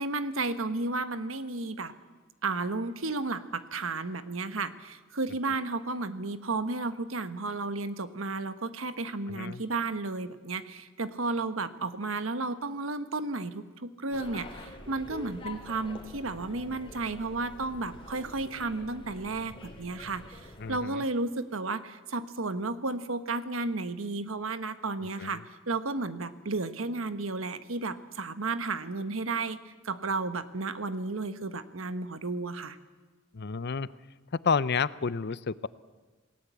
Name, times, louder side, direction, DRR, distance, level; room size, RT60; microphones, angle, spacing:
voice 1, 0.0-1.9 2.4-25.4 25.7-32.8, right 3 dB, 80° right, 11 dB, 1.3 m, -33 dB
voice 2, 9.3-9.6 20.6-21.0 25.2-25.4 33.3-33.9 34.4-35.7, left 5 dB, 55° left, 17 dB, 0.7 m, -30 dB
sound 1, 14.1-20.8, left 2 dB, 25° left, 3.1 m, -46 dB
28.0 x 18.5 x 8.4 m, 1.3 s
head